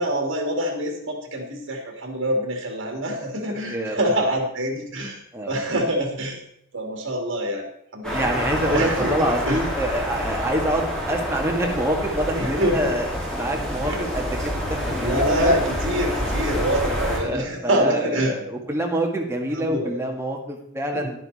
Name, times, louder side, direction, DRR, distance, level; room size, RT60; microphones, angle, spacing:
voice 1, 0.0-6.4 6.7-7.7 7.9-9.6 12.3-12.9 13.8-14.0 14.5-14.6 15.0-18.3 19.5-19.9 20.9-21.1, equal, 60° right, 2 dB, 2.7 m, -25 dB
voice 2, 3.6-4.1 5.3-5.5 8.1-14.4 14.7-15.1 15.4-15.5 17.2-21.2, right 1 dB, 15° right, 1 dB, 1.7 m, -26 dB
sound 1, 8.0-17.2, equal, 5° left, 4.2 m, -27 dB
11.0 x 10.0 x 4.2 m, 0.72 s
head